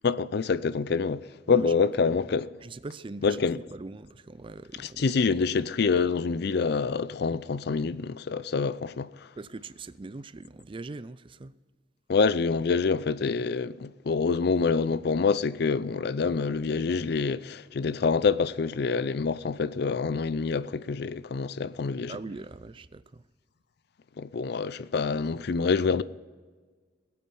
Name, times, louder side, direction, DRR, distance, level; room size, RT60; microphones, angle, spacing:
voice 1, 0.0-2.5 3.2-3.6 4.8-9.1 12.1-22.2 24.2-26.0, left 5 dB, 60° left, 0.5 m, -26 dB
voice 2, 2.6-3.4 3.7-5.1 9.4-11.5 22.1-23.2, right 3 dB, 30° right, 0.4 m, -41 dB
20.0 x 8.5 x 5.5 m
head